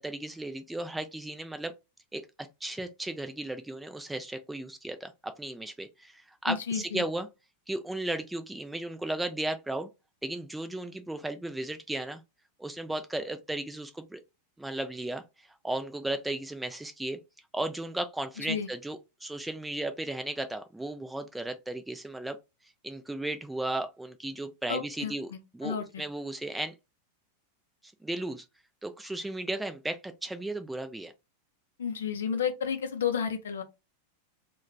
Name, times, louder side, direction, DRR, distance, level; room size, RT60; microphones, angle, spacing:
voice 1, 0.0-1.7 2.1-7.3 7.7-9.9 10.2-12.2 12.6-14.2 14.6-15.2 15.6-17.2 17.5-22.4 22.8-26.7 28.0-28.4 28.8-31.1, right 1 dB, 5° right, 0.3 m, -35 dB
voice 2, 6.5-7.0 18.4-18.7 24.7-26.0 31.8-33.6, left 7 dB, 65° left, 0.5 m, -32 dB
2.2 x 2.2 x 3.0 m
figure-of-eight pair, 90°, 0 cm